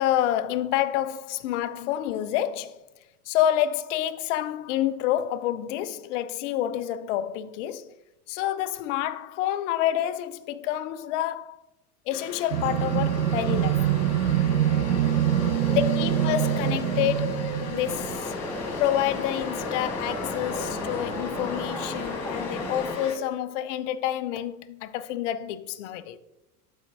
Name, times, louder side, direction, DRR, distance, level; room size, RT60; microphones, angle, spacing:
voice 1, 0.0-2.8 3.3-7.9 8.3-11.6 12.1-13.9 15.7-17.4 17.7-18.3 18.8-26.2, left 11 dB, 50° left, 0.5 m, -28 dB
sound 1, 12.1-23.2, left 3 dB, 35° left, 1.6 m, -35 dB
sound 2, 12.5-18.2, right 11 dB, 90° right, 0.5 m, -25 dB
sound 3, 17.8-23.0, left 1 dB, 5° left, 0.7 m, -35 dB
12.5 x 4.3 x 2.6 m
figure-of-eight pair, 85°, 46 cm